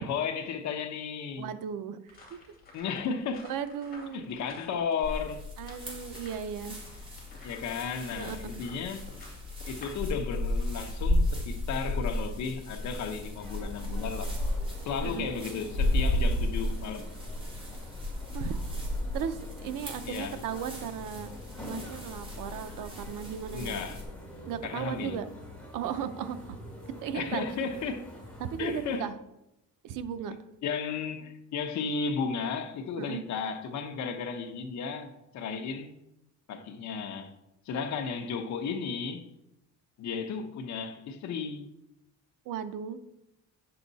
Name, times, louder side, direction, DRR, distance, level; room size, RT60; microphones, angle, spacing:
voice 1, 0.0-1.5 2.7-3.5 4.1-5.5 7.4-9.0 9.7-14.3 14.8-17.1 20.0-20.4 23.5-24.0 24.6-25.2 27.1-28.0 28.6-29.1 30.6-35.9 36.5-37.3 37.6-39.2 40.0-41.7, left 5 dB, 60° left, 1.0 m, -34 dB
voice 2, 1.4-2.4 3.5-4.3 5.6-6.8 8.2-8.6 15.0-15.4 18.3-18.6 19.1-21.3 21.7-23.8 24.5-25.3 25.7-26.6 27.0-27.4 28.4-29.1 29.8-30.3 33.0-33.2 42.5-43.0, right 8 dB, 80° right, 0.8 m, -36 dB
sound 1, 2.1-10.0, left 2 dB, 30° left, 2.3 m, -53 dB
sound 2, 5.0-24.0, left 1 dB, 15° right, 2.0 m, -33 dB
sound 3, 13.3-29.0, equal, 5° left, 2.8 m, -47 dB
9.4 x 6.8 x 4.1 m
cardioid pair, 170°, 31 cm